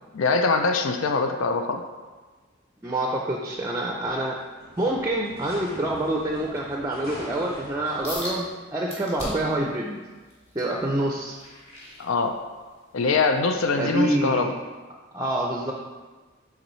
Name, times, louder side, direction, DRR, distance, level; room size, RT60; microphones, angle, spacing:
voice 1, 0.1-1.8 12.0-12.4 12.9-14.5, left 4 dB, 75° left, 6 dB, 0.5 m, -23 dB
voice 2, 2.8-4.4 4.8-10.0 10.5-11.4 13.8-14.5 15.1-15.7, right 1 dB, 15° right, 0 dB, 0.5 m, -26 dB
sound 1, 3.7-8.5, equal, 50° left, 1.6 m, -43 dB
sound 2, 8.0-8.4 8.9-9.6 10.1-12.6 13.1-13.4 13.9-14.0, left 1 dB, 30° left, 1.7 m, -38 dB
7.9 x 3.9 x 3.1 m, 1.3 s
head